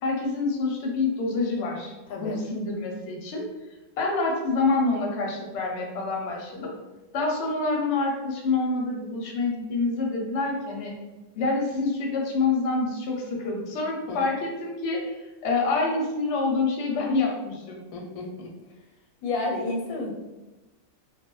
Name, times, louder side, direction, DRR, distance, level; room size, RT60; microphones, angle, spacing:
voice 1, 0.0-3.4 4.0-6.7 7.1-10.9 11.4-17.8, left 3 dB, 65° left, -1 dB, 0.8 m, -27 dB
voice 2, 2.1-2.4 14.1-14.2 17.9-18.5 19.2-20.1, left 2 dB, 90° left, 0 dB, 1.1 m, -31 dB
2.3 x 2.2 x 3.0 m, 1.1 s
omnidirectional pair, 1.5 m